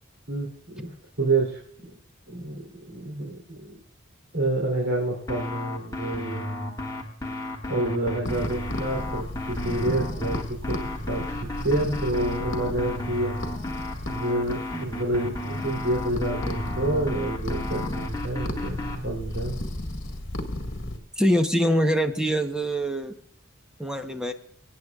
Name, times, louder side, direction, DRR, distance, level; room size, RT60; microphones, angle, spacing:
voice 1, 0.3-1.6 2.3-3.8 4.3-6.8 7.7-10.8 11.1-13.4 14.1-19.6, right 2 dB, 80° right, -3 dB, 3.4 m, -28 dB
sound 1, 5.3-19.0, left 1 dB, 15° left, 1.8 m, -33 dB
sound 2, 8.2-21.0, left 1 dB, 60° left, 1.7 m, -34 dB
voice 2, 21.2-23.1 23.8-24.3, equal, 5° right, 6 dB, 0.9 m, -23 dB
25.0 x 9.5 x 2.4 m, 0.63 s
head